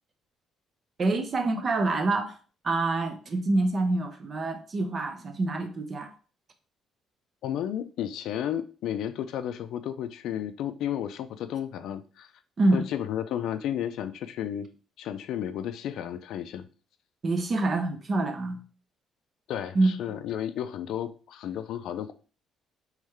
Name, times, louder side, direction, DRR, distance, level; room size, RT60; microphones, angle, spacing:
voice 1, 1.0-2.3 2.6-6.1 12.6-12.9 17.2-18.6 19.7-20.0, right 2 dB, 30° right, 0.5 m, -26 dB
voice 2, 7.4-12.3 12.7-14.7 15.0-16.7 19.5-22.1, left 10 dB, 70° left, 0.3 m, -33 dB
3.6 x 3.1 x 3.2 m
cardioid pair, 155°, 0 cm